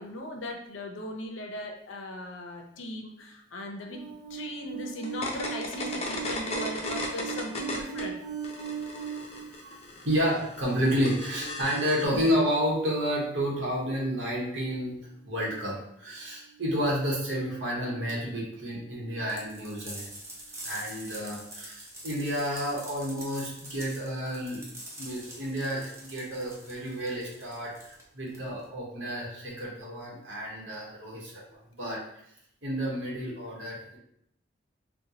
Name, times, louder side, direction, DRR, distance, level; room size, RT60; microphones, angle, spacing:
voice 1, 0.0-4.0 4.3-8.2 12.1-12.4, left 1 dB, 90° left, 2 dB, 0.6 m, -38 dB
voice 2, 3.9-9.8 10.0-15.0 15.2-20.1 20.6-24.6 25.0-32.0 32.6-34.0, equal, 75° right, -4 dB, 1.1 m, -31 dB
sound 1, 5.0-8.0 8.3-12.1, left 2 dB, 35° left, 0.5 m, -36 dB
sound 2, 19.3-28.7, right 1 dB, 15° right, 0.6 m, -45 dB
4.2 x 2.2 x 2.8 m, 0.73 s
head